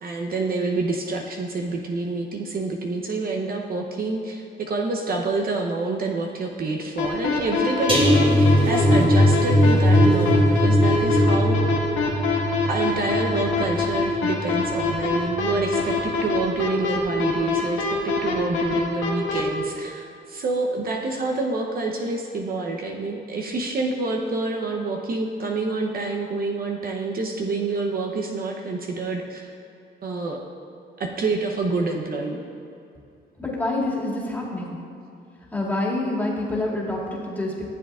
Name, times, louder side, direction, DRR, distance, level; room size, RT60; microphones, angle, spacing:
voice 1, 0.0-11.6 12.7-29.5 30.0-30.4 31.0-32.4, right 3 dB, 50° right, 1 dB, 0.8 m, -27 dB
sound 1, 7.0-19.4, left 5 dB, 90° left, 1.5 m, -24 dB
sound 2, 7.9-15.0 15.3-15.6 15.9-16.1, equal, 25° right, 1.5 m, -20 dB
voice 2, 33.4-34.7 35.5-37.7, left 2 dB, 10° left, -5 dB, 2.2 m, -27 dB
14.5 x 7.3 x 2.4 m, 2.6 s
cardioid pair, 90°, 20 cm